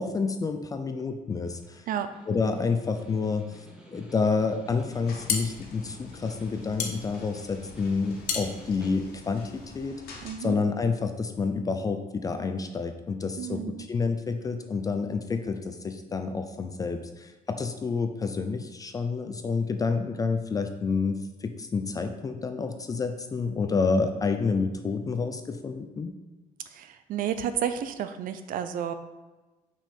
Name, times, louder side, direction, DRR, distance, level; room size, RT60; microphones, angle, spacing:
voice 1, 0.0-1.8 2.3-10.0 10.4-13.6 13.9-26.1, left 4 dB, 25° left, 7 dB, 0.4 m, -29 dB
Snare drum, 1.4-9.4, right 1 dB, 5° right, 0.9 m, -51 dB
sound 1, 4.9-9.9, left 6 dB, 60° left, 0.9 m, -34 dB
sound 2, 5.0-10.3, left 4 dB, 80° left, 1.5 m, -48 dB
voice 2, 10.2-10.6 13.4-13.9 26.7-28.9, right 9 dB, 65° right, 10 dB, 0.5 m, -31 dB
6.0 x 5.4 x 4.3 m, 1.2 s
cardioid pair, 165°, 15 cm